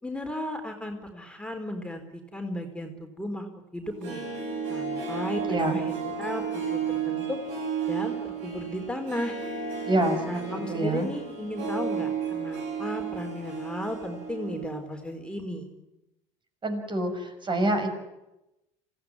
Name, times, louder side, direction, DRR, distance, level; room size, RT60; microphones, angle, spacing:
voice 1, 0.0-3.5 3.7-4.2 4.7-7.4 7.9-9.4 10.3-15.7, left 1 dB, 5° left, 3 dB, 4.6 m, -35 dB
Harp, 3.8-14.9 15.1-15.2, right 6 dB, 75° right, 8.0 m, -33 dB
voice 2, 5.5-5.8 9.9-10.2 10.5-11.1 16.6-17.9, right 1 dB, 30° right, 6 dB, 6.5 m, -26 dB
26.0 x 16.5 x 9.9 m, 0.94 s
hypercardioid pair, 70°, 15 cm